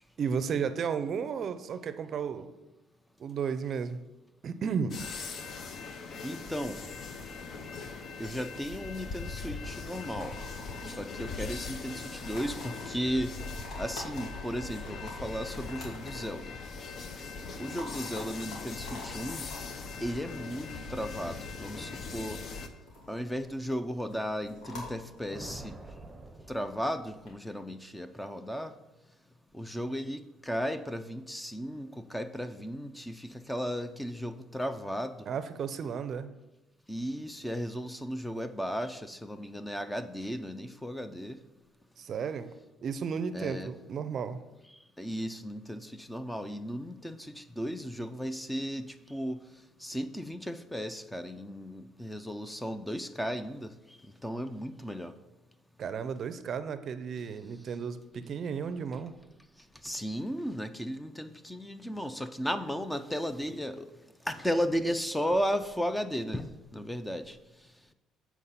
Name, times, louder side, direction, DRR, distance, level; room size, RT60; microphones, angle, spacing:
voice 1, 0.2-2.5 3.2-4.0 4.4-5.0 35.3-36.3 42.0-42.5 42.8-44.4 55.8-59.1, right 6 dB, 45° right, 12 dB, 0.5 m, -33 dB
sound 1, 4.9-22.7, left 4 dB, 45° left, 0.7 m, -41 dB
voice 2, 6.2-6.8 8.2-10.4 10.8-13.3 13.8-16.6 17.6-19.5 20.0-22.4 23.1-25.8 26.5-28.7 29.5-35.2 36.9-41.4 43.3-43.7 44.7-49.4 49.8-55.1 59.8-63.9 64.3-67.4, equal, 5° left, 10 dB, 0.5 m, -35 dB
sound 2, 10.1-27.3, left 2 dB, 70° left, 2.9 m, -48 dB
sound 3, 25.0-27.4, right 2 dB, 15° right, 0.8 m, -47 dB
8.2 x 4.6 x 5.7 m, 1.0 s
cardioid pair, 120°, 0 cm